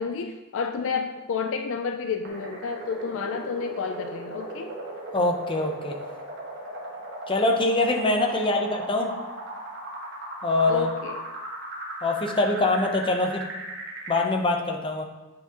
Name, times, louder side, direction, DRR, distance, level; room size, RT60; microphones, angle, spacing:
voice 1, 0.0-4.8 8.3-8.5 10.7-11.2, left 5 dB, 60° left, 6 dB, 0.4 m, -30 dB
sound 1, 2.2-14.2, right 1 dB, 50° right, 1.3 m, -37 dB
voice 2, 5.1-5.9 7.3-9.1 10.4-10.9 12.0-13.4 14.1-15.0, left 2 dB, 25° left, 2 dB, 0.7 m, -24 dB
8.6 x 5.8 x 2.9 m, 1.2 s
head